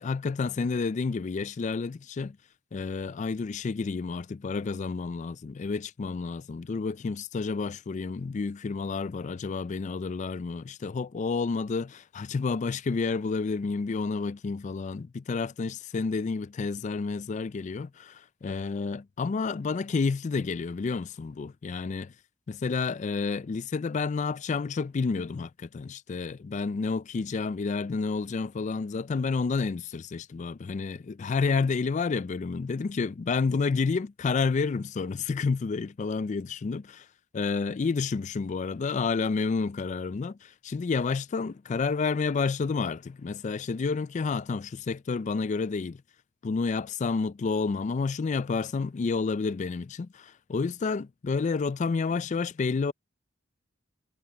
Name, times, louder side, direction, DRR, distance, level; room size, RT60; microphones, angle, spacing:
voice 1, 0.0-2.4 2.7-22.1 22.5-37.1 37.3-46.0 46.4-52.9, left 4 dB, 35° left, 0.3 m, -30 dB
head